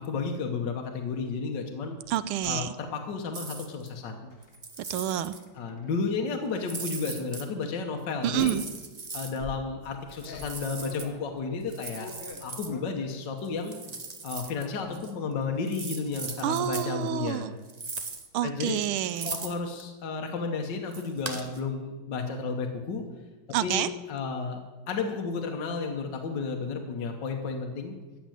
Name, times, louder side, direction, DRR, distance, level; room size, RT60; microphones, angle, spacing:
voice 1, 0.1-2.0 2.4-4.3 5.5-8.6 9.1-12.1 12.4-13.7 14.2-17.5 18.4-18.8 19.2-23.0 23.6-24.6 24.9-28.0, left 4 dB, 60° left, 2 dB, 1.7 m, -32 dB
sound 1, 2.0-2.6 4.3-4.6 5.3-6.1 6.9-7.2 8.3-8.8 9.4-13.2 13.5-14.1 14.3-14.9, left 3 dB, 30° left, 1.4 m, -46 dB
voice 2, 2.1-2.7 4.9-5.4 8.2-8.6 16.4-17.5 18.3-19.3 23.5-23.9, right 12 dB, 80° right, 14 dB, 1.4 m, -28 dB
sound 2, 3.3-3.9 4.4-5.4 6.6-7.5 8.2-9.4 10.1-11.1 11.7-12.7 13.4-14.7 14.9-15.1 15.7-16.9 17.7-18.3 18.7-19.8 20.9-21.6, right 4 dB, 60° right, 0.4 m, -39 dB
14.5 x 6.1 x 9.2 m, 1.2 s
omnidirectional pair, 2.4 m